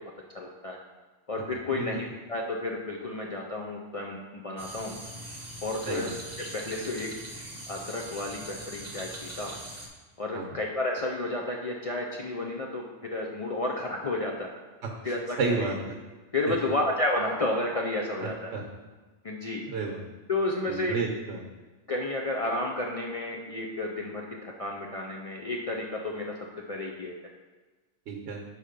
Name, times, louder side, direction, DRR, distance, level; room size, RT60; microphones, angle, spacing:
voice 1, 0.3-0.8 1.3-4.9 5.6-6.1 6.5-7.1 7.7-9.1 9.4-9.5 10.2-12.8 13.1-14.5 15.0-15.7 16.3-18.4 19.2-19.6 20.3-21.0 21.9-26.2 26.7-27.1, left 2 dB, 65° left, -1 dB, 0.3 m, -31 dB
sound 1, 4.6-9.9, right 1 dB, 15° right, 0.8 m, -41 dB
voice 2, 14.8-15.8 16.5-16.7 18.2-18.6 19.7-20.0 20.7-21.4 28.1-28.4, right 4 dB, 70° right, 0 dB, 1.0 m, -32 dB
4.8 x 4.3 x 5.0 m, 1.3 s
omnidirectional pair, 1.3 m